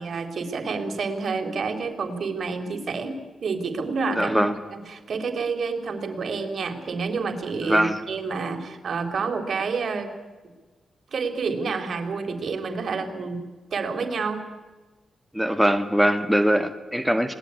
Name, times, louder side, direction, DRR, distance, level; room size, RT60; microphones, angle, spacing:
voice 1, 0.0-4.4 4.7-10.1 11.1-13.4 13.7-14.4 17.1-17.2, right 4 dB, 65° right, 6 dB, 4.1 m, -29 dB
voice 2, 4.2-4.6 7.6-8.0 15.3-17.3, equal, ahead, 8 dB, 1.9 m, -22 dB
27.0 x 20.0 x 9.9 m, 1.3 s
cardioid pair, 60°, 0 cm